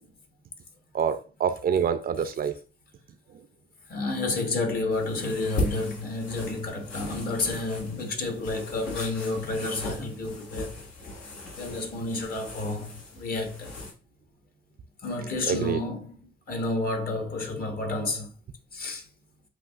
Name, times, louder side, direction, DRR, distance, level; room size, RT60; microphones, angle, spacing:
voice 1, 0.9-2.6 3.3-3.4 15.5-15.8, right 7 dB, 50° right, 0.5 m, -26 dB
voice 2, 3.9-10.7 11.6-13.7 15.0-16.2 16.5-18.3 18.7-19.0, left 2 dB, 50° left, 1.2 m, -30 dB
sound 1, 4.9-13.9, left 2 dB, 85° left, 2.5 m, -38 dB
7.8 x 2.8 x 2.4 m
cardioid pair, 90°, 20 cm